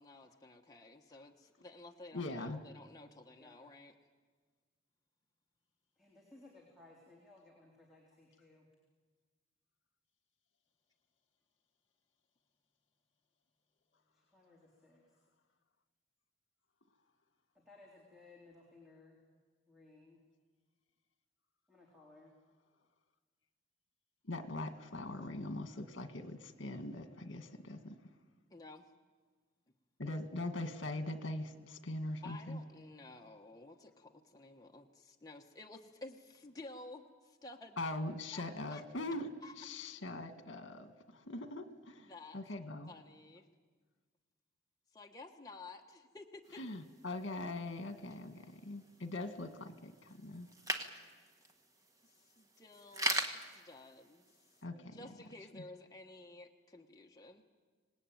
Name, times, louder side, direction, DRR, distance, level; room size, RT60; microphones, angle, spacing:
voice 1, 0.0-4.0 28.5-28.9 32.2-37.8 38.3-38.8 39.4-39.6 42.0-42.4 42.9-43.5 44.9-46.6 52.0-54.4 54.7-57.4, left 2 dB, 20° left, 1 dB, 1.2 m, -53 dB
voice 2, 2.1-2.6 24.2-28.0 30.0-32.6 37.8-39.3 39.6-42.9 46.6-50.5 54.6-55.0, left 2 dB, 70° left, 8 dB, 1.9 m, -42 dB
voice 3, 6.0-8.7 14.3-15.0 17.6-19.2 19.7-20.2 21.7-22.3, left 2 dB, ahead, -3 dB, 3.6 m, -60 dB
sound 1, 46.5-54.6, right 1 dB, 15° right, 1.4 m, -42 dB
26.5 x 19.0 x 9.2 m, 1.5 s
head